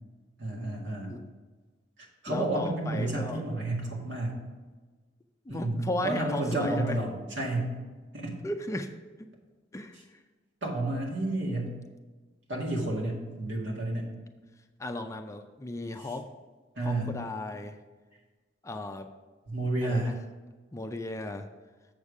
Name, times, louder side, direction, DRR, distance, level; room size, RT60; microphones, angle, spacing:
voice 1, 0.4-1.1 2.2-4.3 5.5-7.7 8.1-8.4 10.6-11.8 12.5-14.1 16.0-16.1 16.8-17.1 19.5-20.1, right 2 dB, 65° right, -1 dB, 2.0 m, -31 dB
voice 2, 2.3-3.4 5.5-7.0 8.4-8.9 9.7-10.0 14.8-16.3 16.8-17.8 18.6-19.1 19.8-20.2 20.7-21.5, left 1 dB, 15° left, 6 dB, 0.4 m, -35 dB
7.2 x 6.9 x 4.8 m, 1.3 s
head